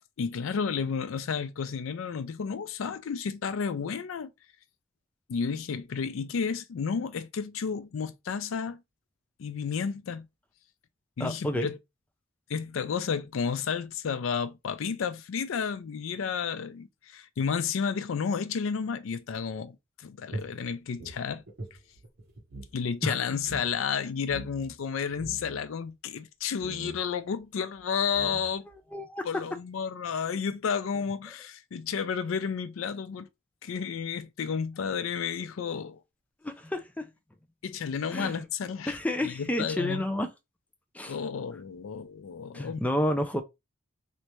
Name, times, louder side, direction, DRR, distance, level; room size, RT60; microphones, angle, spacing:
voice 1, 0.2-4.3 5.3-8.8 9.4-10.3 11.2-11.8 12.5-21.4 22.7-28.7 29.2-33.3 33.6-36.0 37.6-40.1 41.1-42.9, left 6 dB, 80° left, 0.4 m, -32 dB
voice 2, 11.2-11.7 23.0-23.2 28.9-29.2 36.4-37.1 38.1-38.4 38.9-40.3 40.9-41.1 42.5-43.4, left 1 dB, 5° left, 0.4 m, -30 dB
sound 1, 20.3-22.8 23.0-23.1 23.4-23.7 24.3-24.7 25.1-25.6 26.6-27.0 27.8-27.9 28.1-28.7, right 2 dB, 55° right, 1.0 m, -41 dB
3.2 x 2.8 x 3.0 m
head